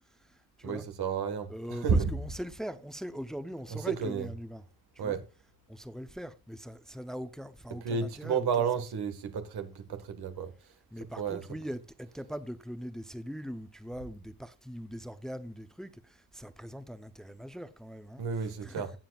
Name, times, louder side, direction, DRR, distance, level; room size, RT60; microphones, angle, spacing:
voice 1, 0.6-2.1 3.7-4.3 5.0-5.2 7.7-10.5 11.0-11.5 18.2-18.9, right 6 dB, 85° right, 1.7 m, -31 dB
voice 2, 1.5-4.6 5.0-5.2 5.7-8.5 10.9-15.9 16.3-18.2 18.6-18.8, equal, ahead, 0.7 m, -41 dB
19.0 x 7.5 x 2.4 m
cardioid pair, 95°, 38 cm